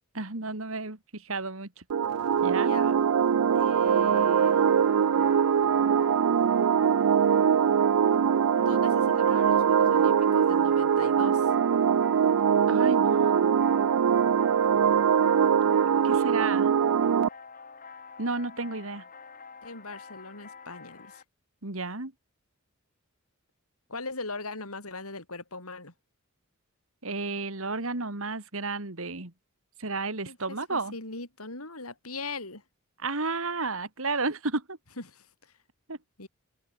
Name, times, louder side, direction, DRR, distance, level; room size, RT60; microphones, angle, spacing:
voice 1, 0.1-1.8 2.4-2.8 12.7-13.5 15.6-16.7 18.2-19.0 21.6-22.1 27.0-29.3 29.8-30.9 33.0-34.8 35.9-36.0, right 3 dB, 65° right, 2.5 m, -32 dB
sound 1, 1.9-17.3, right 7 dB, 90° right, 0.4 m, -22 dB
voice 2, 2.6-3.0 3.5-4.6 8.6-11.5 19.6-21.2 23.9-25.9 30.2-32.6 35.0-35.5 36.2-36.3, left 3 dB, 80° left, 7.7 m, -40 dB
sound 2, 4.4-21.2, left 5 dB, 40° left, 4.7 m, -48 dB
head